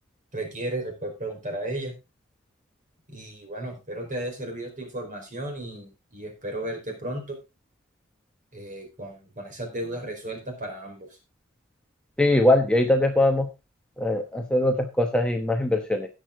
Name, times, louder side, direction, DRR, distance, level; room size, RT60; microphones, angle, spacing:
voice 1, 0.3-1.9 3.1-7.4 8.5-11.2, right 1 dB, 35° right, 3 dB, 4.4 m, -34 dB
voice 2, 12.2-13.5 14.0-16.1, left 1 dB, 5° left, 4 dB, 1.0 m, -21 dB
17.0 x 6.5 x 3.8 m, 0.27 s
head